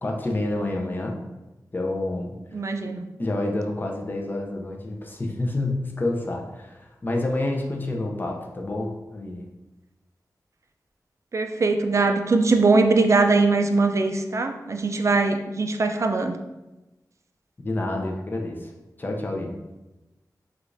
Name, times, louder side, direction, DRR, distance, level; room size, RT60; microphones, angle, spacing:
voice 1, 0.0-1.2 1.7-2.3 3.2-9.4 17.6-18.7 19.0-19.6, left 2 dB, 30° left, 1 dB, 0.5 m, -28 dB
voice 2, 2.5-3.0 11.3-16.4, right 3 dB, 45° right, 6 dB, 0.3 m, -21 dB
4.9 x 2.4 x 2.5 m, 1.0 s
wide cardioid pair, 105°, 7 cm